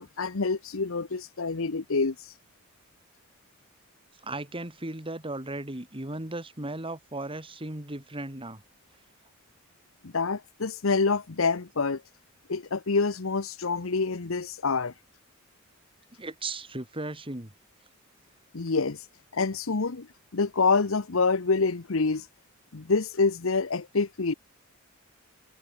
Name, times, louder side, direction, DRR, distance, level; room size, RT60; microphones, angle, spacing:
voice 1, 0.0-2.1 10.0-12.0 12.5-14.9 18.5-19.0 19.3-20.1 20.3-22.2 22.7-24.3, left 4 dB, 70° left, 0.9 m, -26 dB
voice 2, 4.2-8.6 16.2-17.5, right 2 dB, 25° right, 2.9 m, -36 dB
head